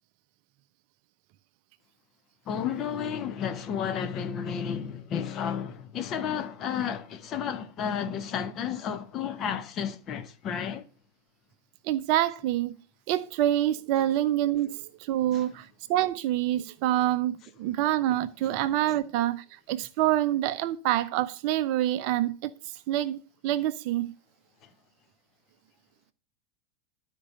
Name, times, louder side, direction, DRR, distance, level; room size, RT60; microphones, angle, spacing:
voice 1, 2.5-10.9 15.3-15.5 18.4-18.5 18.9-19.0 24.6-24.7, left 8 dB, 30° left, 1.0 m, -32 dB
voice 2, 11.8-12.7 13.1-22.5 22.9-24.1, right 13 dB, 45° right, 0.6 m, -26 dB
12.5 x 4.7 x 7.7 m
figure-of-eight pair, 90°, 0 cm